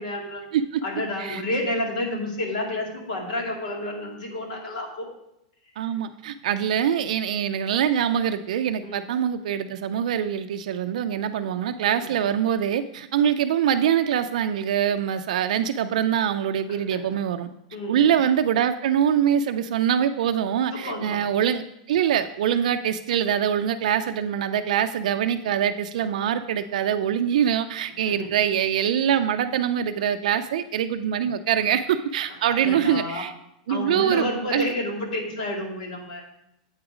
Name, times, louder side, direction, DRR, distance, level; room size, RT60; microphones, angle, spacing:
voice 1, 0.0-0.4 0.8-5.1 8.8-9.0 12.0-12.1 16.7-17.0 17.7-18.2 20.7-21.2 28.0-28.3 32.3-33.2 33.7-36.2, left 1 dB, 80° left, 0 dB, 2.2 m, -30 dB
voice 2, 5.8-17.5 17.9-33.3 33.7-34.7, right 9 dB, 75° right, 8 dB, 0.4 m, -24 dB
8.0 x 4.8 x 4.9 m, 0.82 s
supercardioid pair, 150°, 4 cm